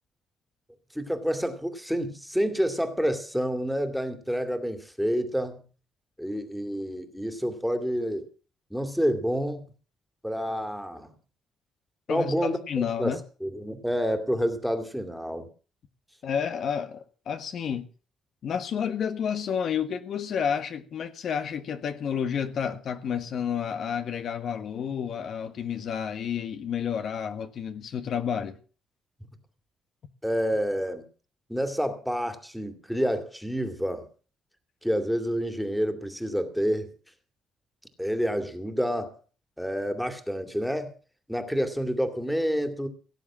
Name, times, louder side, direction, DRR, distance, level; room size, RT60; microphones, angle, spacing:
voice 1, 0.9-5.6 6.2-8.3 8.7-9.7 10.2-11.1 12.1-15.5 30.2-31.0 31.5-34.1 34.8-36.9 38.0-39.2 39.6-40.9 41.3-42.9, equal, ahead, 2.3 m, -28 dB
voice 2, 12.1-13.2 16.2-17.9 18.4-28.6, left 7 dB, 65° left, 1.4 m, -30 dB
17.5 x 7.5 x 7.4 m
cardioid pair, 90°, 0 cm